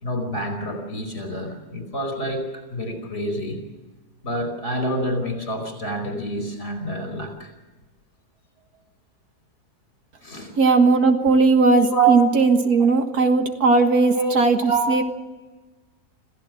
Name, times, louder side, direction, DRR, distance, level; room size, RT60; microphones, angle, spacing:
voice 1, 0.0-3.6 4.2-7.5 10.2-10.5 11.8-12.2 12.5-12.9 14.1-15.0, right 3 dB, 45° left, 6 dB, 5.0 m, -27 dB
voice 2, 10.6-15.0, right 3 dB, 70° right, 6 dB, 2.0 m, -18 dB
26.5 x 16.0 x 7.6 m, 1.2 s
omnidirectional pair, 1.7 m